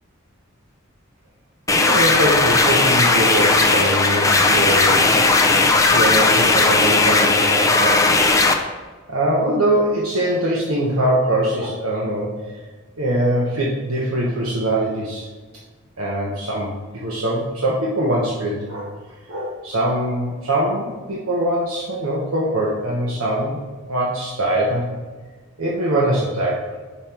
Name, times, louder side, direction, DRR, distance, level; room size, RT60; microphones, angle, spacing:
sound 1, 1.7-8.5, left 3 dB, 15° left, 0.6 m, -16 dB
voice 1, 1.7-8.1 9.1-12.4 13.0-15.3 16.0-18.9 19.3-23.6 23.9-24.9 25.6-26.7, right 1 dB, 90° right, -4 dB, 1.2 m, -22 dB
6.5 x 5.7 x 4.4 m, 1.4 s
head